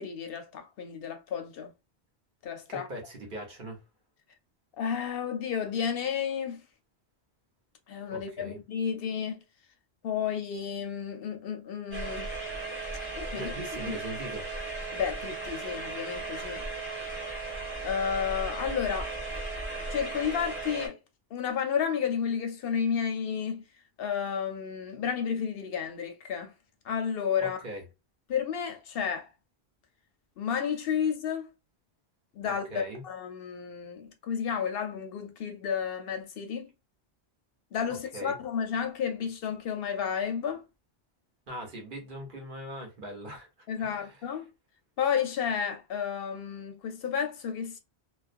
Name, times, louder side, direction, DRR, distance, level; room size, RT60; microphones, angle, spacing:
voice 1, 0.0-1.7 2.4-2.9 4.8-6.6 7.9-9.4 10.0-12.3 13.2-13.5 13.8-14.0 14.9-16.6 17.8-19.1 19.9-21.0 21.3-23.6 24.0-26.5 26.8-27.6 28.3-29.3 30.4-31.5 32.3-36.7 37.7-40.6 43.7-44.5 45.0-47.8, left 7 dB, 65° left, 0.8 m, -31 dB
voice 2, 2.7-3.8 8.1-8.6 13.4-14.4 27.4-27.8 32.4-33.0 37.9-38.4 41.5-43.5 43.8-44.2, right 1 dB, 50° right, 1.0 m, -40 dB
sound 1, 11.9-20.9, right 3 dB, 10° right, 1.2 m, -36 dB
2.4 x 2.1 x 2.4 m
omnidirectional pair, 1.1 m